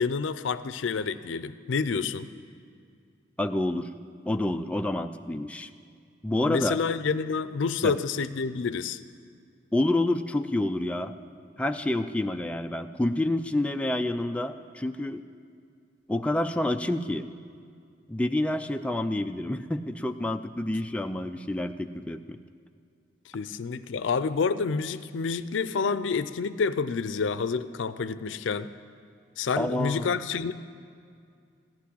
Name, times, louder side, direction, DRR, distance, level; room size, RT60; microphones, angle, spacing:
voice 1, 0.0-2.3 6.4-9.0 23.3-28.7 29.4-30.5, left 5 dB, 90° left, 14 dB, 0.5 m, -28 dB
voice 2, 3.4-3.9 4.3-5.7 6.2-6.8 7.8-7.9 9.7-11.1 11.6-15.2 16.1-17.3 18.1-22.4 29.6-30.1, left 1 dB, 5° left, 6 dB, 0.3 m, -28 dB
14.5 x 6.0 x 9.9 m, 2.3 s
head